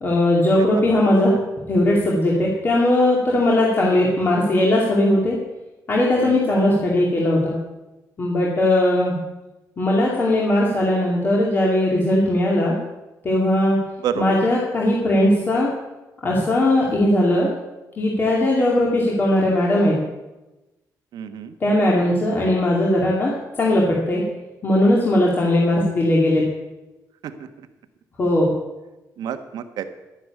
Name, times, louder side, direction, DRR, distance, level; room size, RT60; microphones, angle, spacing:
voice 1, 0.0-1.3 1.7-5.4 5.9-7.5 8.2-9.1 9.8-12.8 13.2-13.8 14.2-15.7 16.2-17.5 18.0-19.9 21.6-24.2 24.6-26.4 28.2-28.5, left 1 dB, 30° left, -3 dB, 2.4 m, -19 dB
voice 2, 6.2-6.6 14.0-14.3 21.1-21.5 27.2-27.3 29.2-29.8, right 8 dB, 80° right, 9 dB, 1.3 m, -29 dB
12.0 x 10.0 x 8.3 m, 1.1 s
cardioid pair, 160°, 7 cm